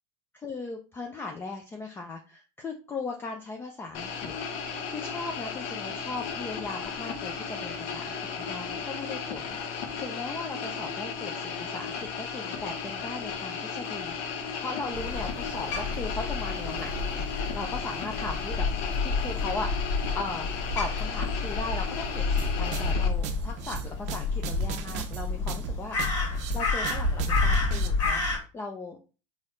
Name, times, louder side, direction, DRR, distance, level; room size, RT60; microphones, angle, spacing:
voice 1, 0.3-4.3 4.6-18.7 19.0-20.5 20.8-29.0, left 3 dB, 15° left, 3 dB, 0.4 m, -38 dB
sound 1, 3.9-23.1, left 5 dB, 55° left, 0.8 m, -35 dB
Crow, 14.9-28.4, left 3 dB, 75° left, 1.4 m, -30 dB
sound 2, 22.4-27.9, right 8 dB, 50° right, 0.6 m, -36 dB
3.9 x 2.5 x 3.1 m, 0.34 s
supercardioid pair, 120°, 16 cm